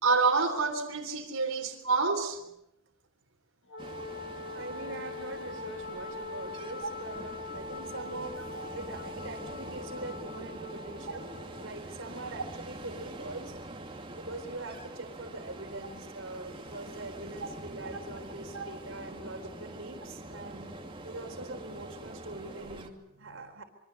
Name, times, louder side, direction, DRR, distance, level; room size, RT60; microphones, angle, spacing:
voice 1, 0.0-2.4 8.6-8.7 18.5-18.6, right 4 dB, 75° right, 3.4 m, -27 dB
Wind instrument woodwind instrument, 3.7-11.7, left 2 dB, 55° left, 2.9 m, -42 dB
Ocean, 3.8-22.9, right 1 dB, 25° right, 2.6 m, -45 dB
voice 2, 4.4-8.4 8.7-13.6 14.1-20.7 21.0-23.6, right 2 dB, 60° right, 3.9 m, -43 dB
26.5 x 24.5 x 7.1 m
head